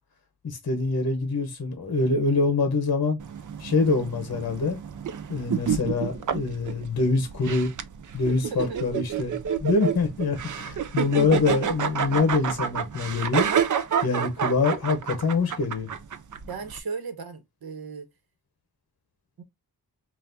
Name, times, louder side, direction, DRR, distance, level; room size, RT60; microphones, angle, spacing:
voice 1, 0.4-3.2 3.6-4.8 5.3-7.7 8.1-13.5 14.0-15.9, left 4 dB, 45° left, 0.9 m, -25 dB
sound 1, 3.2-16.8, right 7 dB, 55° right, 0.5 m, -29 dB
voice 2, 8.5-8.8 16.5-18.1 19.4-19.5, right 5 dB, 70° right, 1.2 m, -36 dB
5.6 x 2.5 x 2.5 m
wide cardioid pair, 160°, 37 cm